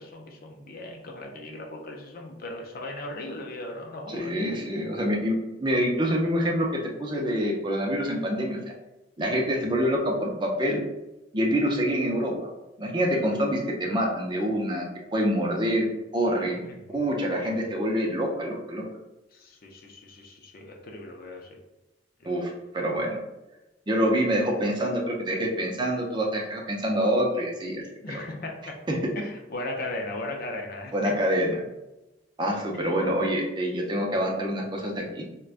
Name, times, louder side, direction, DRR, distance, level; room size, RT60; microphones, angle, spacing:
voice 1, 0.0-4.6 9.5-9.6 13.1-13.6 16.7-16.8 17.4-17.6 19.3-21.6 28.0-28.7 29.2-31.1 32.7-32.9, left 2 dB, 50° left, 1 dB, 0.5 m, -37 dB
voice 2, 4.1-5.3 5.6-8.6 9.2-10.8 11.3-12.3 12.8-15.9 16.1-18.8 22.2-23.2 23.9-28.2 28.9-29.0 30.9-31.6 32.4-35.2, equal, 25° right, 0 dB, 0.5 m, -26 dB
4.7 x 2.2 x 2.4 m, 1.0 s
head